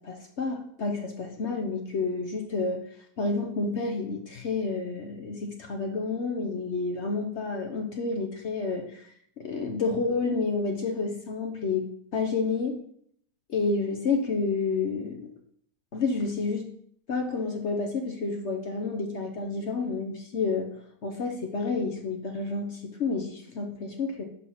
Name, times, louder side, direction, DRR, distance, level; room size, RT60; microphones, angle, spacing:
voice 1, 0.0-2.8 3.2-9.1 9.4-12.8 13.5-15.3 15.9-16.7 17.1-20.7 21.0-24.2, left 4 dB, 55° left, 3 dB, 0.8 m, -30 dB
6.1 x 4.2 x 5.5 m, 0.66 s
omnidirectional pair, 1.9 m